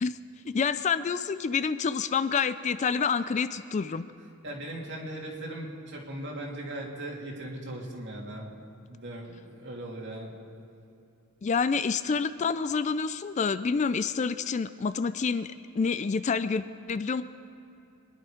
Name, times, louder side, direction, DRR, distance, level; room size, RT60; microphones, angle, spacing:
voice 1, 0.5-4.0 11.4-15.5 15.8-17.2, left 5 dB, 35° left, 13 dB, 0.3 m, -28 dB
voice 2, 4.4-8.5 8.9-10.3, right 1 dB, 55° right, -2 dB, 2.8 m, -38 dB
24.5 x 11.0 x 5.1 m, 2.8 s
head